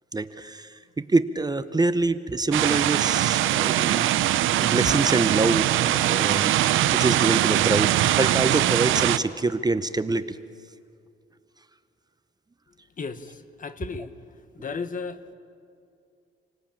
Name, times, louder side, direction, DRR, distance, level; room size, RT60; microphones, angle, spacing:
voice 1, 0.1-10.4, right 3 dB, 20° right, 12 dB, 0.8 m, -26 dB
sound 1, 2.5-9.2, right 13 dB, 80° right, 0.8 m, -22 dB
voice 2, 13.0-14.2 14.5-15.3, left 5 dB, 40° left, 11 dB, 1.3 m, -34 dB
28.0 x 18.0 x 8.8 m, 2.4 s
cardioid pair, 90°, 20 cm